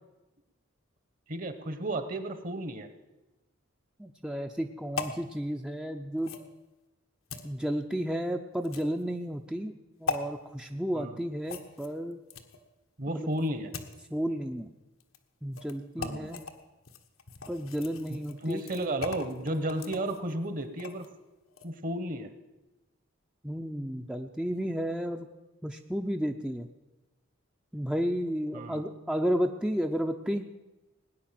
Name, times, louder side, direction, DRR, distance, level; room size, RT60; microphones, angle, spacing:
voice 1, 1.3-2.9 10.9-11.2 13.0-13.7 16.0-16.3 18.1-21.1 21.6-22.3 28.5-28.9, right 1 dB, 40° right, 11 dB, 1.2 m, -33 dB
voice 2, 4.0-6.4 7.4-9.7 10.0-12.2 13.1-13.3 14.1-14.7 15.4-16.4 17.5-18.6 23.4-25.3 25.6-26.7 27.7-30.5, equal, 5° right, 4 dB, 0.6 m, -32 dB
sound 1, 5.0-5.2 6.2-6.5 7.3-7.5 8.6-9.0 10.1-10.2 11.4-12.6 13.3-14.0 15.0-15.2 15.5-15.7 16.0-16.5 16.8-21.1 21.5-21.7, left 5 dB, 90° left, 1.4 m, -39 dB
18.5 x 9.9 x 7.6 m, 1.0 s
head